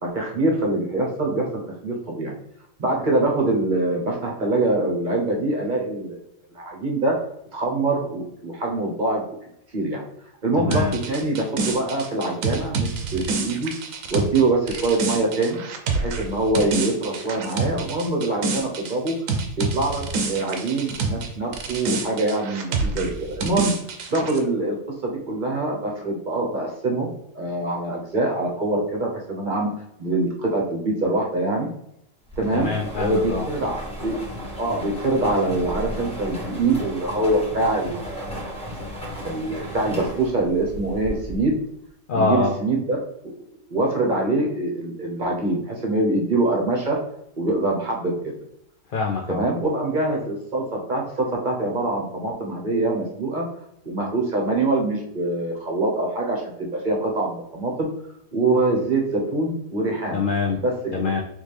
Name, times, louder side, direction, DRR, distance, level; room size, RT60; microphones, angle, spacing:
voice 1, 0.0-1.5 1.8-2.3 2.8-6.2 6.5-7.2 7.5-9.2 9.7-10.0 10.4-13.7 14.1-15.6 15.9-19.2 19.6-23.7 24.1-24.7 25.0-29.7 30.0-31.7 32.4-32.7 33.0-34.2 34.6-38.6 39.2-41.5 42.1-43.3 43.7-47.0 47.4-48.3 49.3-53.4 53.8-57.9 58.3-60.2 60.6-60.7, right 2 dB, 40° right, -1 dB, 0.9 m, -24 dB
voice 2, 10.6-11.0 32.5-33.5 42.1-42.6 48.9-49.4 60.1-60.6 60.9-61.2, left 4 dB, 75° left, 1 dB, 0.4 m, -24 dB
sound 1, 10.7-21.3 21.5-24.4, right 4 dB, 75° right, 1.0 m, -27 dB
sound 2, 32.3-41.6, equal, 5° left, 1.0 m, -34 dB
4.2 x 3.1 x 3.3 m, 0.77 s
omnidirectional pair, 1.5 m